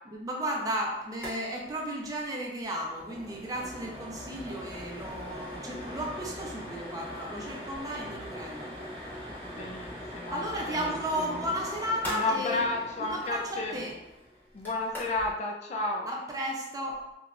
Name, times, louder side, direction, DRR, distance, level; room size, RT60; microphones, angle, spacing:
voice 1, 0.1-8.7 10.3-12.7 13.0-13.9 16.1-17.0, equal, 20° right, -1 dB, 0.5 m, -34 dB
sound 1, 1.1-1.4 1.6-1.7 2.1-2.3 2.6-15.3, equal, 10° left, 0.8 m, -41 dB
voice 2, 9.5-10.4 10.7-10.8 11.2-11.4 12.1-13.7 14.5-16.1, left 2 dB, 40° left, 1 dB, 0.3 m, -32 dB
2.9 x 2.2 x 2.4 m, 0.93 s
head